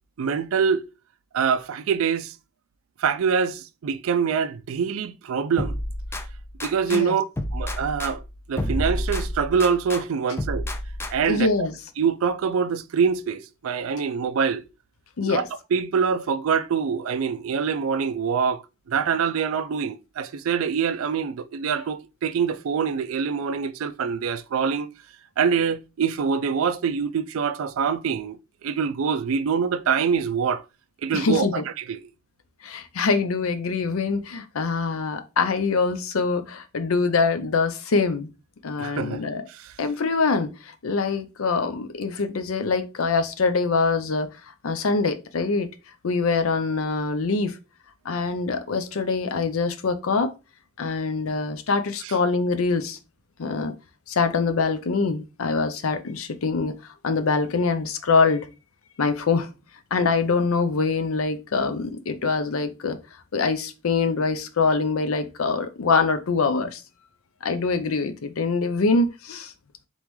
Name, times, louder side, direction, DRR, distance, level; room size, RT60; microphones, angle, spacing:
voice 1, 0.2-0.8 1.3-2.3 3.0-5.8 6.6-7.2 7.5-8.2 8.5-10.7 11.1-11.5 12.0-14.6 15.2-15.5 15.7-18.6 18.9-24.9 25.4-30.6 31.0-32.0 38.8-39.2 39.5-39.7 52.0-52.1, right 6 dB, 80° right, 0.4 m, -25 dB
sound 1, 5.6-7.0 7.4-10.0 10.4-11.4, left 1 dB, 10° left, 0.3 m, -30 dB
voice 2, 11.3-11.7 15.2-15.4 31.1-31.6 32.6-38.3 38.6-39.4 39.8-44.3 44.6-45.7 46.0-47.6 48.0-50.3 50.8-53.0 53.4-53.7 54.1-56.7 57.0-58.5 59.0-59.5 59.9-63.0 63.3-66.8 67.4-69.5, left 4 dB, 85° left, 0.6 m, -24 dB
3.9 x 3.6 x 3.0 m
head